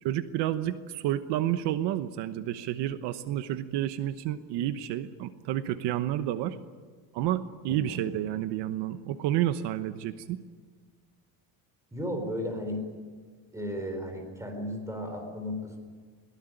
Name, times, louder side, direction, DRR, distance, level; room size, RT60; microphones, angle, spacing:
voice 1, 0.0-6.6 7.1-10.4, right 12 dB, 70° right, 11 dB, 1.1 m, -30 dB
voice 2, 7.7-8.0 11.9-12.8 13.5-15.8, left 1 dB, 5° right, 4 dB, 4.2 m, -34 dB
22.5 x 18.5 x 9.2 m, 1.5 s
cardioid pair, 175°, 43 cm